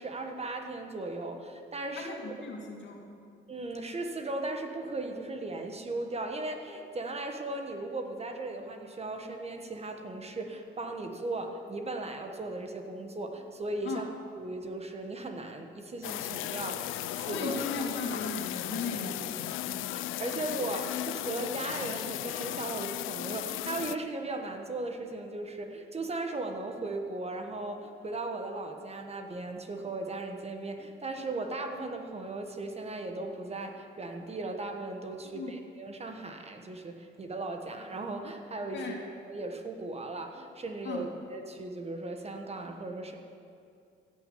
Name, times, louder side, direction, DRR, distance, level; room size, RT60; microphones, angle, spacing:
voice 1, 0.0-2.3 3.5-14.1 14.4-17.8 19.7-39.0 39.2-43.2, right 2 dB, 30° right, 4 dB, 1.3 m, -37 dB
voice 2, 2.0-3.0 13.8-14.0 17.3-19.3 35.3-35.6 38.7-39.0 40.8-41.0, left 3 dB, 65° left, 0 dB, 2.6 m, -36 dB
sound 1, 16.0-24.0, left 14 dB, 90° left, 0.4 m, -36 dB
16.0 x 6.4 x 8.4 m, 2.5 s
cardioid pair, 90°, 20 cm